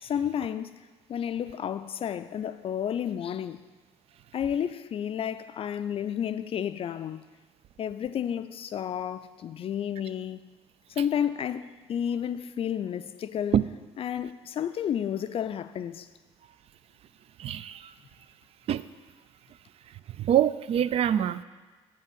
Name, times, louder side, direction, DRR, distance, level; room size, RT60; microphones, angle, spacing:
voice 1, 0.0-0.8 1.1-3.6 4.3-7.2 7.8-10.5 10.9-13.6 14.0-16.1, left 9 dB, 40° left, 0.4 m, -31 dB
voice 2, 17.4-17.9 18.7-18.9 19.9-21.4, right 10 dB, 45° right, 0.3 m, -25 dB
7.0 x 5.4 x 6.2 m
hypercardioid pair, 55°, 14 cm